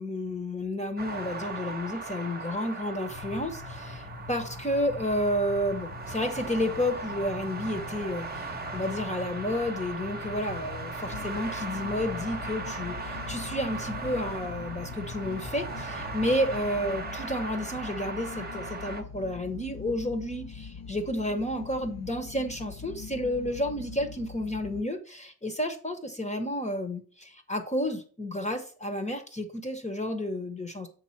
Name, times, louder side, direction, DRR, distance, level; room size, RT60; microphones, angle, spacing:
voice 1, 0.0-3.9 4.3-30.9, left 1 dB, 15° left, 5 dB, 1.0 m, -31 dB
sound 1, 1.0-19.0, right 3 dB, 25° right, 1.0 m, -38 dB
sound 2, 3.1-16.8, left 3 dB, 65° left, 1.3 m, -44 dB
sound 3, 11.1-24.8, left 5 dB, 45° left, 0.5 m, -43 dB
7.5 x 3.7 x 5.8 m, 0.41 s
wide cardioid pair, 115°, 39 cm